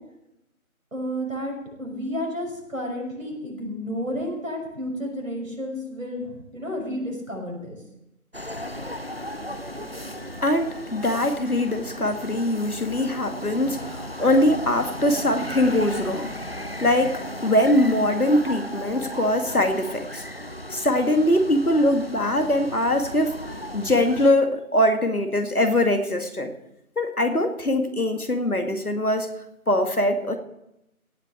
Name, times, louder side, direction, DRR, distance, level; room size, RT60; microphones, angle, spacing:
voice 1, 0.9-7.8, equal, 65° right, -1 dB, 5.9 m, -31 dB
sound 1, 8.3-24.3, equal, 45° right, 0.7 m, -36 dB
voice 2, 10.4-16.3 16.8-20.2 20.7-23.4 23.7-26.5 27.0-29.3 29.7-30.4, left 1 dB, 85° left, 6 dB, 2.2 m, -22 dB
17.0 x 6.2 x 8.2 m, 0.86 s
figure-of-eight pair, 180°, 44 cm